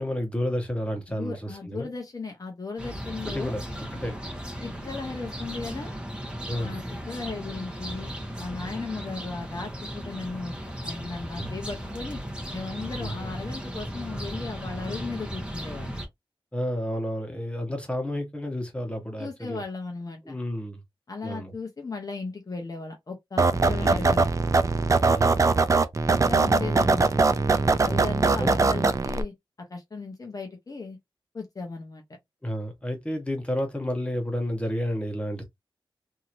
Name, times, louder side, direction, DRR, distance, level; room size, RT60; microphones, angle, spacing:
voice 1, 0.0-1.9 3.2-3.6 4.0-4.2 6.5-6.8 11.4-11.6 13.0-13.1 16.5-19.6 20.2-20.8 21.2-21.5 23.8-24.1 25.0-25.5 26.6-26.8 27.9-28.0 28.4-28.5 32.4-35.4, equal, 10° left, 1.1 m, -31 dB
voice 2, 1.1-3.5 4.6-5.9 6.6-8.1 8.4-10.5 10.8-12.2 12.5-15.9 19.2-20.3 21.1-24.3 26.3-27.1 27.8-29.3 29.7-31.0 31.3-32.0, left 4 dB, 40° left, 0.8 m, -36 dB
sound 1, 2.8-16.1, equal, 10° right, 1.1 m, -36 dB
sound 2, 23.4-29.2, right 3 dB, 35° right, 0.4 m, -21 dB
3.0 x 2.8 x 2.5 m
wide cardioid pair, 90°, 9 cm